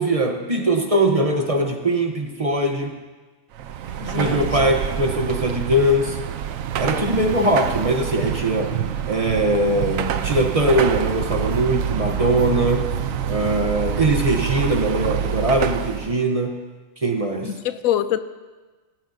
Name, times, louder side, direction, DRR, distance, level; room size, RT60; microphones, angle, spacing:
voice 1, 0.0-3.0 4.1-6.2 6.8-8.8 9.1-12.9 13.3-16.6 17.0-17.6, right 1 dB, 30° right, 4 dB, 0.8 m, -21 dB
Car passing by / Traffic noise roadway noise / Engine, 3.5-16.2, right 8 dB, 85° right, 1.0 m, -26 dB
voice 2, 4.0-4.5 17.4-18.2, left 11 dB, 90° left, 12 dB, 1.0 m, -24 dB
16.0 x 14.5 x 2.6 m, 1.3 s
omnidirectional pair, 1.4 m